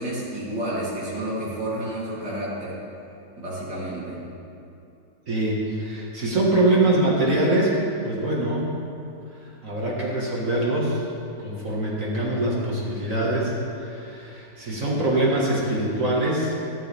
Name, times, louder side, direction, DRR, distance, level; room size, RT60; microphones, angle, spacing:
voice 1, 0.0-2.8 3.4-4.2, right 1 dB, 70° right, -9 dB, 4.4 m, -30 dB
voice 2, 5.3-7.7 8.0-8.7 9.6-11.0 11.4-16.5, right 1 dB, 45° right, -5 dB, 2.2 m, -23 dB
14.0 x 13.5 x 3.6 m, 2.6 s
omnidirectional pair, 1.9 m